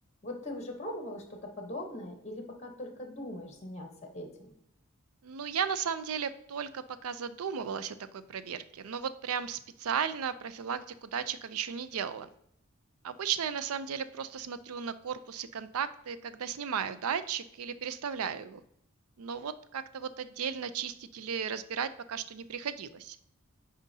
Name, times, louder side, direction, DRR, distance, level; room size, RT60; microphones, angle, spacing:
voice 1, 0.2-4.5, left 1 dB, 30° left, 4 dB, 0.9 m, -41 dB
voice 2, 5.2-12.3 13.0-18.6 19.2-23.2, right 7 dB, 85° right, 13 dB, 0.4 m, -35 dB
9.0 x 5.0 x 2.7 m, 0.74 s
head